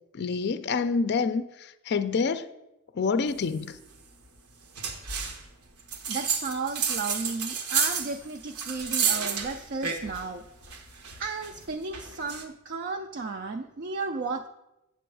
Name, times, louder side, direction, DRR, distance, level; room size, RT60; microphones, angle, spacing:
voice 1, 0.1-2.5 2.9-3.8, left 5 dB, 50° left, 0.4 m, -27 dB
sound 1, 4.7-5.4 5.9-10.3 10.6-12.4, right 6 dB, 85° right, 1.1 m, -30 dB
voice 2, 6.1-10.4 11.2-14.5, right 4 dB, 45° right, 0.4 m, -34 dB
7.8 x 7.8 x 4.7 m
head